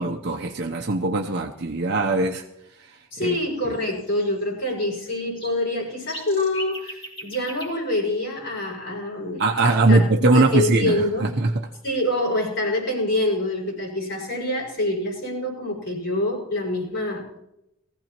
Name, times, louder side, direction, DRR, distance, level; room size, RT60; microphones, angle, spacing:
voice 1, 0.0-2.4 3.2-3.4 3.6-3.7 9.4-11.5, right 2 dB, 50° right, 0.7 m, -21 dB
sound 1, 1.6-1.7 1.9-2.2 3.6-4.7 5.0-8.9 11.2-12.9 13.6-13.7 14.0-14.4, equal, 25° left, 3.2 m, -42 dB
voice 2, 3.1-11.3 11.8-17.4, left 1 dB, 55° left, 5.9 m, -26 dB
23.0 x 15.0 x 3.0 m
head